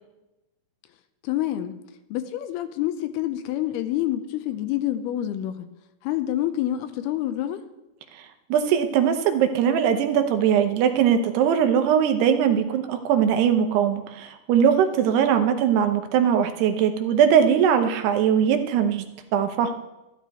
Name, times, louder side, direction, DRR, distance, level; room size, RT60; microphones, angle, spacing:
voice 1, 1.2-1.8 2.1-5.7 6.0-7.6, left 13 dB, 80° left, 10 dB, 2.6 m, -27 dB
voice 2, 8.5-19.1 19.3-19.7, right 8 dB, 85° right, 7 dB, 3.0 m, -20 dB
12.5 x 12.5 x 4.2 m, 0.97 s
omnidirectional pair, 4.6 m